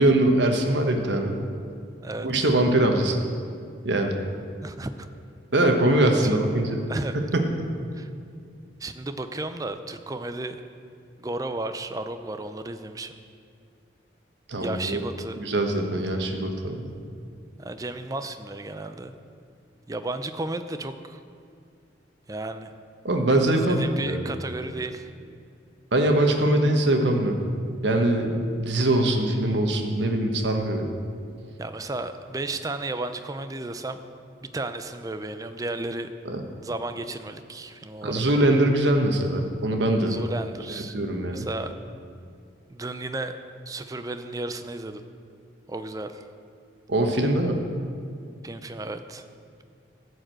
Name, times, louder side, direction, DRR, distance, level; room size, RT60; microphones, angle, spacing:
voice 1, 0.0-1.3 2.2-3.2 3.8-4.2 5.5-6.8 7.3-7.5 14.5-15.0 15.4-16.9 23.0-24.3 25.9-27.4 27.8-30.9 36.2-36.4 38.0-40.2 40.9-41.5 46.9-47.6, right 1 dB, 75° right, 4 dB, 1.2 m, -22 dB
voice 2, 2.0-2.5 4.6-5.1 6.2-6.4 6.9-7.1 7.9-8.1 8.8-10.6 11.2-13.2 14.6-15.4 17.6-19.2 19.9-21.2 22.3-22.7 23.5-25.1 31.6-34.0 34.4-36.1 36.6-38.6 40.1-41.0 41.3-41.7 42.7-43.4 43.7-45.0 45.7-46.3 48.4-49.2, right 2 dB, 20° right, 9 dB, 0.4 m, -33 dB
14.5 x 4.9 x 7.6 m, 2.3 s
head